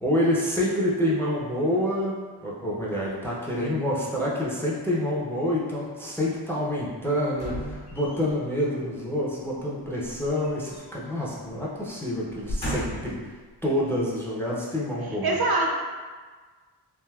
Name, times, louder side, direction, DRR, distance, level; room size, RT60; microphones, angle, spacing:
voice 1, 0.0-13.2 13.6-15.4, left 1 dB, 5° left, -5 dB, 0.4 m, -27 dB
sound 1, 7.4-8.5 10.0-11.2 11.5-11.7 12.3-13.2 13.9-14.0, equal, 60° left, 1.1 m, -35 dB
voice 2, 15.0-15.7, right 2 dB, 60° right, -1 dB, 0.5 m, -24 dB
3.3 x 2.6 x 2.2 m, 1.4 s
wide cardioid pair, 110°, 43 cm